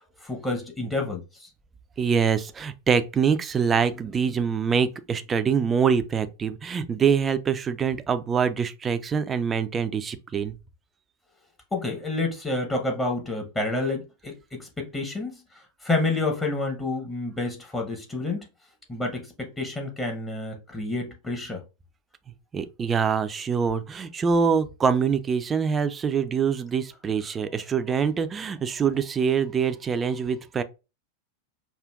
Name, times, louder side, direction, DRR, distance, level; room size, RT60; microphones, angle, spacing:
voice 1, 0.2-1.5 11.7-15.4 15.8-18.5 18.9-21.6, left 2 dB, 15° left, 0.9 m, -29 dB
voice 2, 2.0-10.6 22.5-30.6, right 6 dB, 20° right, 0.4 m, -24 dB
5.0 x 2.4 x 2.4 m
figure-of-eight pair, 90°, 0 cm